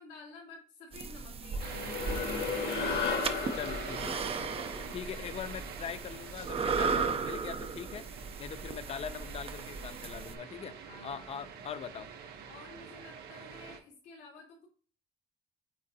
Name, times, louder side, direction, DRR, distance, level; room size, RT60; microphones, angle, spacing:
voice 1, 0.0-4.1 10.8-11.7 12.5-14.7, left 3 dB, 85° left, 2.9 m, -52 dB
sound 1, 0.9-10.3, right 5 dB, 35° right, 0.6 m, -36 dB
sound 2, 1.5-6.2, left 5 dB, 65° left, 1.9 m, -36 dB
sound 3, 1.6-13.8, right 7 dB, 70° right, 1.0 m, -46 dB
voice 2, 3.6-4.0 4.8-10.8 11.0-12.1, left 8 dB, 35° left, 0.5 m, -42 dB
9.0 x 3.7 x 2.8 m
cardioid pair, 110°, 17 cm